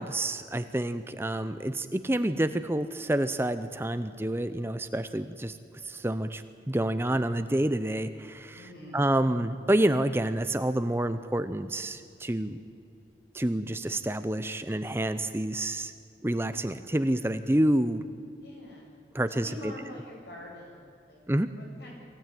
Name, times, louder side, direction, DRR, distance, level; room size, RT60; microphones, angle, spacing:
voice 1, 0.0-5.6 5.8-8.6 8.9-12.6 13.3-15.9 16.2-18.0 19.1-19.7 21.3-21.5, right 1 dB, 15° right, 10 dB, 0.6 m, -28 dB
voice 2, 8.5-9.1 18.4-19.0 19.3-22.0, left 1 dB, 65° left, -2 dB, 7.4 m, -45 dB
23.5 x 16.0 x 9.3 m, 2.4 s
head